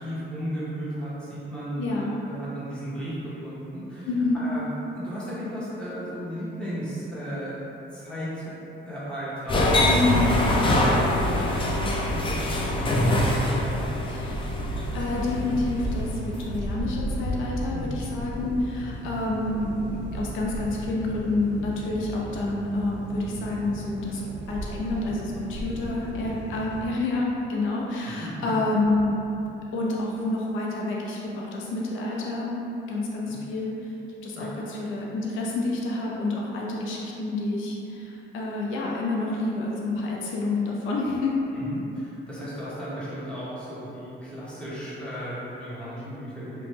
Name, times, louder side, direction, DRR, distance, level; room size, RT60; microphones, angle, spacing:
voice 1, 0.0-4.1 4.3-7.5 7.9-8.5 8.9-10.2 10.5-14.1 17.7-17.8 28.0-28.5 33.2-33.3 34.3-34.5 41.5-46.7, equal, 5° left, -10 dB, 1.0 m, -35 dB
voice 2, 1.8-2.1 4.0-4.4 9.9-10.3 14.1-29.2 29.7-33.9 34.2-41.4, left 2 dB, 80° left, -3 dB, 0.5 m, -28 dB
sound 1, 9.5-16.3, left 1 dB, 25° left, 0.4 m, -24 dB
sound 2, 14.2-26.9, right 1 dB, 65° right, 0.5 m, -35 dB
2.9 x 2.1 x 3.2 m, 3.0 s
cardioid pair, 90°, 20 cm